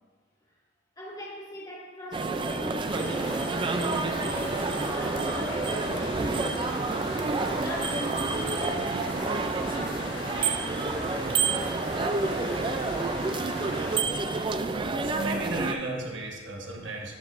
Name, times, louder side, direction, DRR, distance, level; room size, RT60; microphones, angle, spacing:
voice 1, 1.0-3.6 4.1-6.9 7.5-12.1, equal, 20° left, -6 dB, 1.9 m, -42 dB
sound 1, 2.1-15.7, right 3 dB, 25° right, 0.4 m, -29 dB
sound 2, 2.9-14.0, left 1 dB, 60° left, 1.6 m, -39 dB
sound 3, 4.7-14.9, right 1 dB, 5° right, 1.7 m, -53 dB
voice 2, 15.0-17.2, right 2 dB, 65° right, 0 dB, 1.3 m, -34 dB
11.5 x 8.0 x 2.5 m, 1.5 s
head